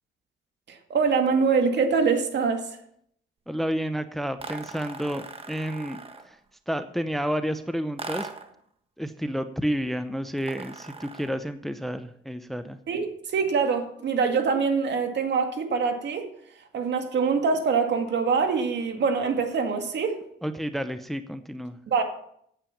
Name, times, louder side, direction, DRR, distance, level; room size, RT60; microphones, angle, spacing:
voice 1, 0.7-2.7 12.9-16.3 16.7-20.2 21.9-22.0, right 5 dB, 60° right, 2.0 m, -24 dB
voice 2, 3.5-6.0 6.3-6.4 6.7-8.3 9.0-12.8 20.4-21.8, equal, ahead, 0.7 m, -30 dB
sound 1, 4.4-6.4 8.0-8.6 10.4-11.4, right 3 dB, 30° right, 1.4 m, -39 dB
9.0 x 8.4 x 7.2 m
cardioid pair, 90°, 20 cm